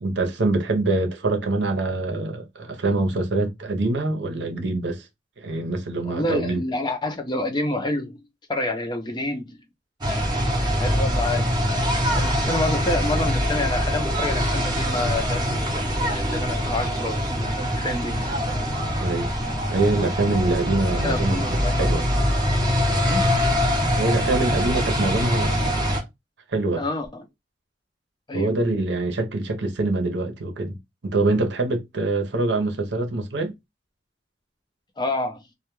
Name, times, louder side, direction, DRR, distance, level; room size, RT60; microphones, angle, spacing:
voice 1, 0.0-5.0 5.4-6.6 19.0-19.4 19.7-22.1 24.0-26.0 26.5-26.8 28.3-30.8 31.0-33.5, right 2 dB, 65° right, 0.7 m, -24 dB
voice 2, 6.0-8.2 8.5-9.6 10.8-11.5 12.2-18.2 21.0-22.1 23.0-23.3 26.8-27.3 28.3-28.5 35.0-35.4, left 2 dB, 25° left, 0.5 m, -28 dB
sound 1, 10.0-26.0, equal, 25° right, 0.7 m, -23 dB
2.2 x 2.2 x 3.0 m
head